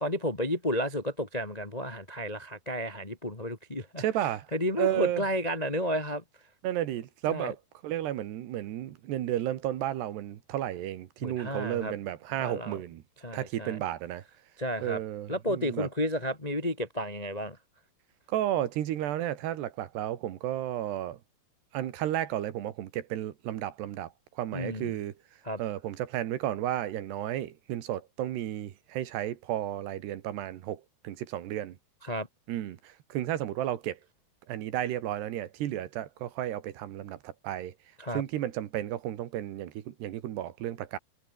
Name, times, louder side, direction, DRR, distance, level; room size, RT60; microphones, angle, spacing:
voice 1, 0.0-4.0 4.5-6.2 7.3-7.5 11.2-11.9 12.4-12.8 13.2-13.8 14.6-15.0 15.3-17.6 24.5-25.0 25.4-25.6 32.0-32.3 38.0-38.2, equal, 40° left, 0.5 m, -32 dB
voice 2, 4.0-4.5 4.8-5.2 6.6-7.6 7.8-13.0 13.3-14.2 14.8-15.9 18.3-21.2 21.7-24.1 24.4-25.1 25.6-31.8 32.5-34.0 34.5-37.7 38.1-41.0, right 12 dB, 75° right, 3.7 m, -33 dB
omnidirectional pair, 4.9 m